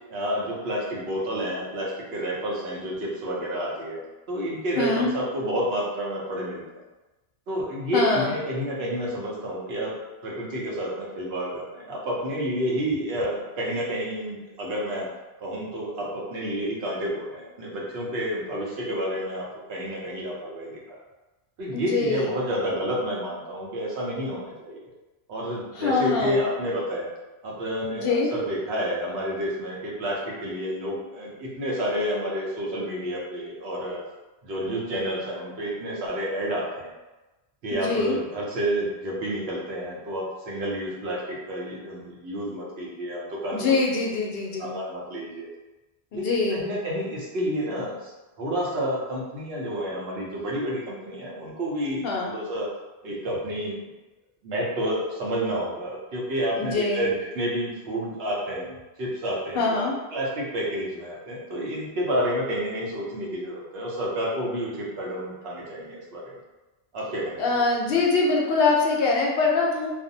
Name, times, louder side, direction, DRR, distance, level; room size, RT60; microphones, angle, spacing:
voice 1, 0.1-6.6 7.5-9.9 10.2-15.1 15.4-19.4 19.7-21.0 21.6-24.9 25.3-27.1 27.4-34.0 34.4-36.9 37.6-43.7 44.6-45.5 46.1-48.1 48.4-52.7 53.0-53.8 54.4-59.7 60.1-66.3 66.9-67.4, equal, 70° right, -4 dB, 0.9 m, -30 dB
voice 2, 4.8-5.1 7.9-8.3 21.7-22.3 25.7-26.4 27.9-28.3 37.7-38.1 43.5-44.7 46.1-46.6 52.0-52.4 56.6-57.1 59.5-59.9 67.4-69.9, left 3 dB, 65° left, -2 dB, 0.7 m, -23 dB
2.5 x 2.0 x 2.6 m, 1.1 s
omnidirectional pair, 1.1 m